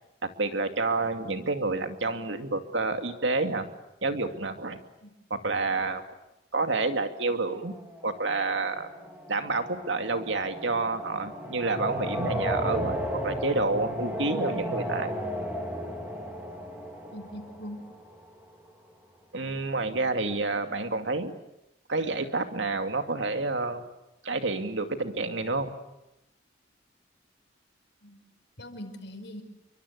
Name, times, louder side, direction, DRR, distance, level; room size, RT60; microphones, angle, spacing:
voice 1, 0.2-3.7 4.0-4.8 5.3-6.0 6.5-7.8 8.0-8.9 9.3-13.0 13.2-15.2 19.3-21.3 21.9-23.9 24.2-25.7, right 3 dB, 70° right, 7 dB, 2.4 m, -29 dB
sound 1, 7.5-18.4, equal, 10° right, 4.1 m, -34 dB
voice 2, 17.1-17.9 28.0-28.2 28.6-29.4, equal, 65° left, 6 dB, 5.0 m, -41 dB
30.0 x 24.0 x 8.4 m, 0.91 s
head